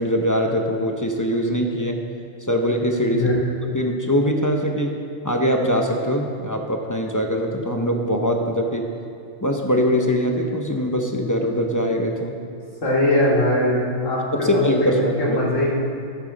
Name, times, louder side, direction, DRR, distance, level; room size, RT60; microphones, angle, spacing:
voice 1, 0.0-2.0 2.4-3.2 3.7-5.0 5.2-8.8 9.4-12.4 14.3-15.4, equal, 20° left, 2 dB, 0.6 m, -22 dB
voice 2, 12.8-15.8, left 1 dB, 85° left, -6 dB, 2.7 m, -21 dB
13.5 x 8.3 x 4.1 m, 2.5 s
omnidirectional pair, 1.3 m